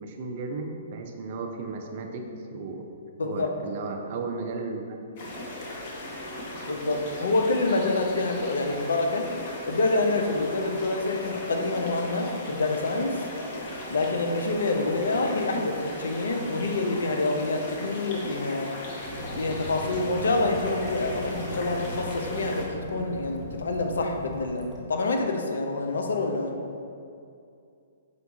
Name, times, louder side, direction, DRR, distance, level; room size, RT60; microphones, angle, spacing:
voice 1, 0.0-2.9 3.2-5.5, right 3 dB, 50° right, 3 dB, 0.4 m, -35 dB
voice 2, 3.2-3.5 6.7-9.3 9.7-13.2 13.9-18.7 19.4-26.6, left 2 dB, 75° left, 3 dB, 0.4 m, -27 dB
sound 1, 5.2-22.7, left 1 dB, 45° left, 0.8 m, -37 dB
Waves surf / Splash splatter / Trickle dribble, 19.0-24.8, equal, 5° right, 0.7 m, -39 dB
4.4 x 2.3 x 3.8 m, 2.5 s
hypercardioid pair, 125°, 0 cm